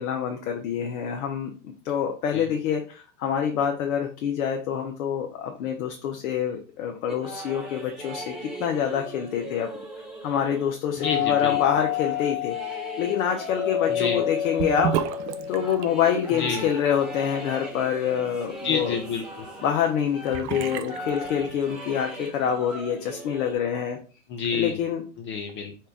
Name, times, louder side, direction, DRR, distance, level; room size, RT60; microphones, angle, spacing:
voice 1, 0.0-8.3 8.6-9.7 10.2-14.9 15.5-19.0 19.6-24.0 24.5-25.0, left 8 dB, 70° left, 3 dB, 0.9 m, -26 dB
sound 1, 7.1-19.9 20.1-23.5, right 1 dB, ahead, 1.1 m, -40 dB
Doorbell, 11.0-15.9, left 11 dB, 45° left, 1.1 m, -29 dB
voice 2, 11.0-11.6 13.9-14.2 16.3-16.7 18.6-19.5 24.3-24.8 25.2-25.7, left 6 dB, 30° left, 4 dB, 0.5 m, -29 dB
Sink (filling or washing) / Bathtub (filling or washing), 14.6-21.9, right 10 dB, 50° right, 0.5 m, -35 dB
4.3 x 2.5 x 3.4 m, 0.37 s
hypercardioid pair, 115°, 43 cm